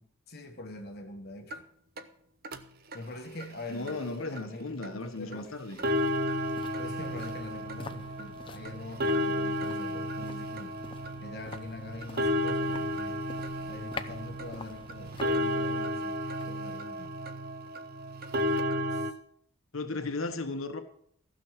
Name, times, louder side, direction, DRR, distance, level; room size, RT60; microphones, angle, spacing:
voice 1, 0.3-1.7 2.9-5.6 6.8-10.7 11.2-13.2 13.7-16.2 16.4-17.1 18.9-19.1, left 2 dB, 50° left, 4 dB, 1.3 m, -44 dB
sound 1, 1.5-1.6 2.0-2.1 2.4-2.6 2.9-3.0 3.4-3.5 3.9-4.0 4.4-4.5 4.8-4.9 5.3-5.4 5.7-19.1, left 1 dB, 45° right, 0.9 m, -32 dB
voice 2, 3.7-5.8 19.7-20.8, left 3 dB, 75° left, 7 dB, 1.2 m, -35 dB
sound 2, 4.8-17.9 18.2-18.3, left 3 dB, 25° left, 0.5 m, -48 dB
15.5 x 6.4 x 7.3 m, 0.65 s
head